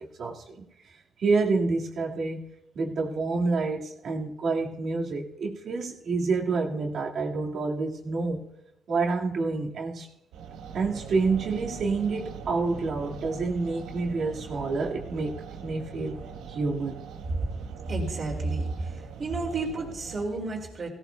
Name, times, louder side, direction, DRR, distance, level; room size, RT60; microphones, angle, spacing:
voice 1, 0.2-0.6 1.2-2.4 2.7-8.4 8.9-10.1 10.7-16.2 16.5-17.1, right 3 dB, 60° right, 0 dB, 1.9 m, -28 dB
sound 1, 10.3-20.2, right 6 dB, 90° right, 1.0 m, -41 dB
voice 2, 17.9-18.9 19.2-20.9, right 3 dB, 40° right, -6 dB, 2.8 m, -31 dB
17.0 x 16.5 x 2.3 m, 0.83 s
cardioid pair, 90°, 0 cm